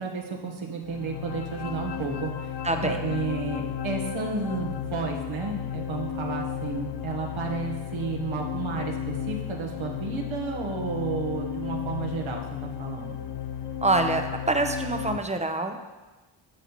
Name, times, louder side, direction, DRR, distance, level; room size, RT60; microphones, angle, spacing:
voice 1, 0.0-2.5 2.8-13.2, right 4 dB, 80° right, 0 dB, 1.3 m, -32 dB
sound 1, 0.8-15.2, left 9 dB, 60° left, 0.5 m, -34 dB
voice 2, 2.6-3.0 13.8-15.9, right 2 dB, 15° right, 6 dB, 0.7 m, -26 dB
11.5 x 5.5 x 3.0 m, 1.2 s
cardioid pair, 80°, 47 cm